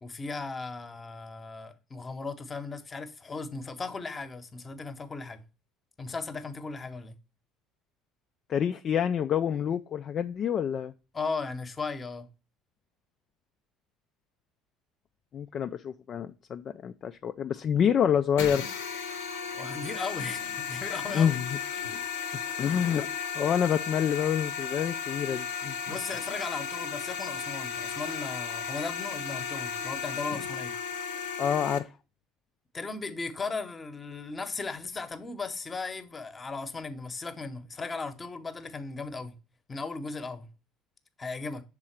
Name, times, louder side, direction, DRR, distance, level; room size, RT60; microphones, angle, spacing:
voice 1, 0.0-5.4 6.0-7.1 11.1-12.3 19.5-21.4 25.9-30.7 32.7-39.3 39.7-40.5 41.2-41.6, left 4 dB, 25° left, 0.9 m, -37 dB
voice 2, 8.5-10.9 15.3-18.7 21.1-21.6 22.3-23.1 23.3-25.8 31.4-31.9, left 8 dB, 45° left, 0.3 m, -27 dB
sound 1, 18.4-31.8, left 7 dB, 75° left, 0.7 m, -35 dB
6.3 x 3.7 x 4.4 m
figure-of-eight pair, 60°, 0 cm